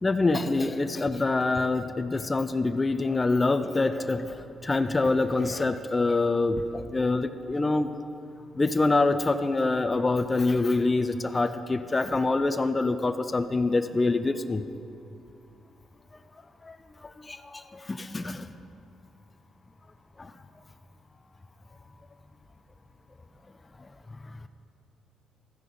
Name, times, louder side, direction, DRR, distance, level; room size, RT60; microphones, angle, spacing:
voice 1, 0.0-7.9 8.6-14.6 16.6-16.7 17.2-18.5 20.2-20.3, left 3 dB, 25° left, 10 dB, 0.4 m, -25 dB
13.0 x 5.4 x 5.0 m, 2.6 s
cardioid pair, 90°, 0 cm